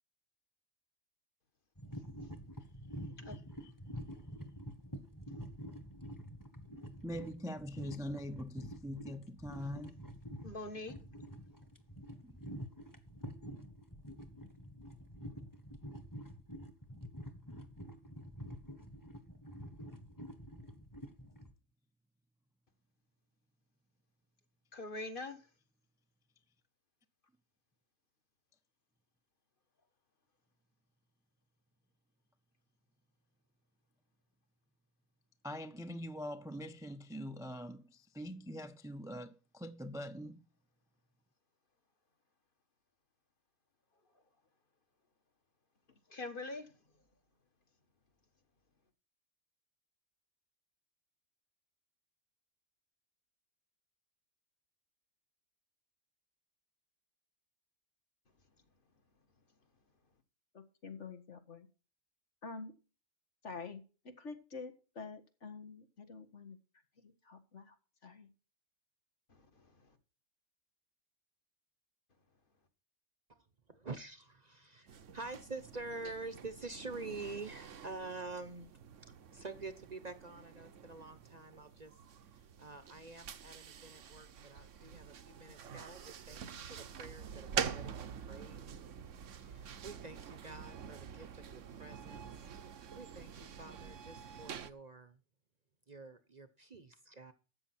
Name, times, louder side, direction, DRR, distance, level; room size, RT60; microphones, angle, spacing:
sound 1, 1.8-21.5, equal, 15° left, 1.4 m, -48 dB
voice 1, 3.3-3.7 7.0-10.0 12.2-12.3 35.4-40.4, equal, 5° right, 0.5 m, -43 dB
voice 2, 10.4-11.0 24.7-25.5 46.1-46.7 69.3-70.0, left 2 dB, 45° left, 1.9 m, -44 dB
voice 3, 60.5-61.7 62.4-62.7 63.4-66.6 67.0-67.8 68.0-68.3, left 4 dB, 65° left, 2.1 m, -48 dB
voice 4, 73.3-82.0 82.3-88.6 89.5-95.2 95.9-97.3, right 3 dB, 35° right, 1.0 m, -48 dB
sound 2, 74.9-94.7, right 7 dB, 75° right, 1.3 m, -46 dB
13.0 x 8.6 x 4.3 m
omnidirectional pair, 1.3 m